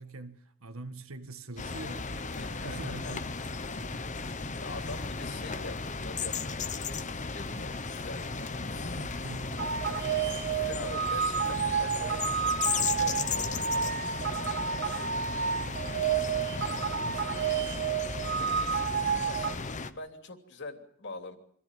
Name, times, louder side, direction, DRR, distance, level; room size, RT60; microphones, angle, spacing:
voice 1, 0.0-3.3 3.6-4.1 8.7-9.9 16.6-17.9, right 2 dB, 70° right, 1.9 m, -45 dB
sound 1, 1.6-19.9, left 4 dB, 35° left, 1.0 m, -35 dB
voice 2, 2.3-3.2 4.6-8.8 9.8-15.5 18.4-21.4, left 2 dB, 55° left, 3.1 m, -45 dB
sound 2, 9.6-19.5, right 7 dB, 50° right, 1.4 m, -30 dB
25.5 x 14.5 x 9.2 m
head